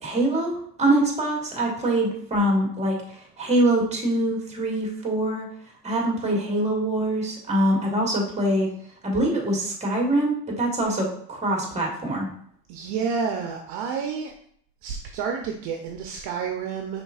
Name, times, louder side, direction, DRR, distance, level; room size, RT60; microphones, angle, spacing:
voice 1, 0.0-5.5 5.8-8.7 9.0-12.3, right 1 dB, 15° right, 0 dB, 1.5 m, -24 dB
voice 2, 12.7-14.3 14.8-17.0, right 6 dB, 50° right, 3 dB, 0.7 m, -29 dB
5.2 x 3.5 x 2.4 m, 0.64 s
hypercardioid pair, 90°, 49 cm